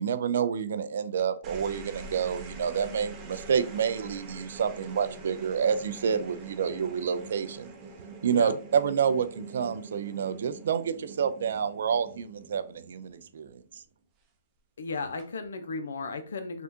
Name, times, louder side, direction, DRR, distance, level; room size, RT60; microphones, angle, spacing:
voice 1, 0.0-7.7 8.2-13.6, right 7 dB, 65° right, 11 dB, 0.4 m, -28 dB
sound 1, 1.2-13.8 15.0-15.5, right 4 dB, 25° right, 0.6 m, -45 dB
voice 2, 14.8-16.6, left 4 dB, 80° left, 8 dB, 0.6 m, -35 dB
3.5 x 2.4 x 2.7 m, 0.39 s
hypercardioid pair, 145°, 0 cm